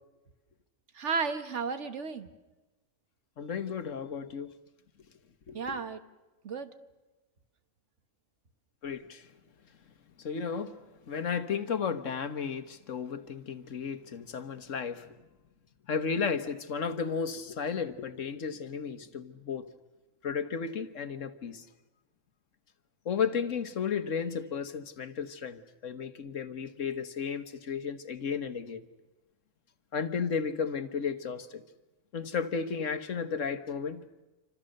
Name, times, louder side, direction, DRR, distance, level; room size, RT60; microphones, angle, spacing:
voice 1, 0.9-2.3 5.5-6.0 6.4-6.7, right 5 dB, 60° right, 1.6 m, -33 dB
voice 2, 3.4-4.5 5.5-5.8 8.8-9.2 10.2-10.8 11.1-15.1 15.9-19.7 20.2-21.6 23.0-28.8 29.9-31.6 32.1-34.0, left 6 dB, 70° left, 1.6 m, -33 dB
28.0 x 25.5 x 6.6 m
omnidirectional pair, 1.4 m